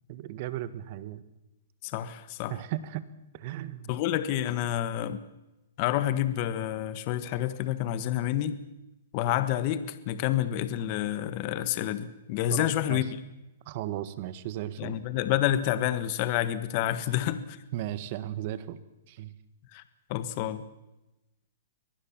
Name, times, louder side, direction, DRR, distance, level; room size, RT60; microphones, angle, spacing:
voice 1, 0.1-1.2 2.5-3.1 3.3-3.9 12.5-13.1 13.7-15.0 17.7-18.8 19.1-19.3, right 13 dB, 45° right, 14 dB, 1.6 m, -36 dB
voice 2, 1.8-2.5 3.9-5.2 5.8-8.6 9.1-13.0 14.8-17.6 19.7-19.8 20.1-20.6, left 12 dB, 40° left, 13 dB, 1.5 m, -28 dB
24.0 x 19.5 x 7.4 m, 0.97 s
hypercardioid pair, 145°, 0 cm